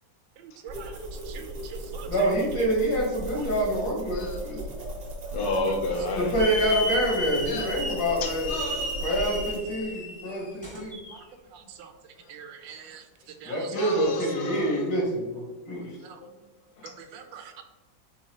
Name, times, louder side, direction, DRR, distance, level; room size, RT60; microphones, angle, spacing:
voice 1, 0.4-1.0 1.3-2.3 3.3-3.4 10.7-10.8 11.1-11.2 11.5-11.9 12.3-13.0 13.4-14.0 16.0-16.2 17.0-17.6, right 7 dB, 85° right, 6 dB, 1.3 m, -44 dB
sound 1, 0.7-9.6, right 1 dB, 55° right, 1.4 m, -37 dB
voice 2, 2.1-4.6 6.2-8.5 9.0-11.0 13.5-15.9, right 1 dB, 75° left, -3 dB, 2.0 m, -26 dB
voice 3, 5.3-6.5 6.8-6.9 7.5-7.7 8.2-9.3 12.2-12.3 13.7-14.8 16.2-16.3 16.8-16.9, left 2 dB, 50° left, 1 dB, 1.0 m, -32 dB
Hiss / Alarm, 6.4-11.2, left 1 dB, 5° left, 0.7 m, -33 dB
4.6 x 3.9 x 2.9 m, 1.2 s
omnidirectional pair, 2.0 m